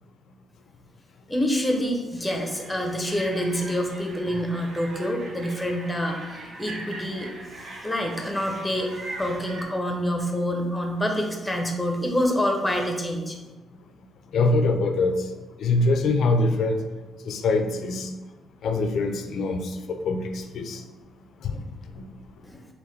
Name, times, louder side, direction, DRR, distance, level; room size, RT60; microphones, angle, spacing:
voice 1, 1.3-7.3 7.8-8.9 9.2-13.4 22.4-22.7, equal, 10° left, 3 dB, 0.7 m, -27 dB
sound 1, 2.2-9.6, right 2 dB, 60° right, 0.7 m, -41 dB
voice 2, 14.3-15.2 15.6-16.8 17.3-18.1 18.6-20.8 21.4-21.6, left 3 dB, 70° left, 6 dB, 0.4 m, -23 dB
3.8 x 3.0 x 3.2 m, 1.2 s
cardioid pair, 90°, 0 cm